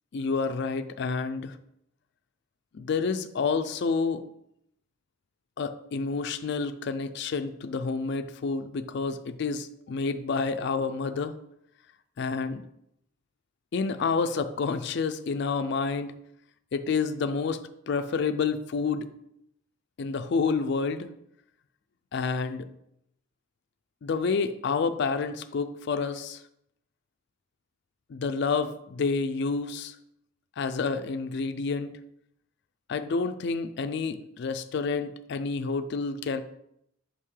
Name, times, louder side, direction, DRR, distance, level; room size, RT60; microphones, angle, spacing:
voice 1, 0.1-1.6 2.7-4.2 5.6-11.4 12.2-12.6 13.7-16.1 16.7-19.1 20.0-21.1 22.1-22.7 24.0-26.4 28.1-30.0 30.6-31.9 32.9-36.4, left 4 dB, 55° left, 9 dB, 0.4 m, -29 dB
5.6 x 5.5 x 3.3 m, 0.77 s
head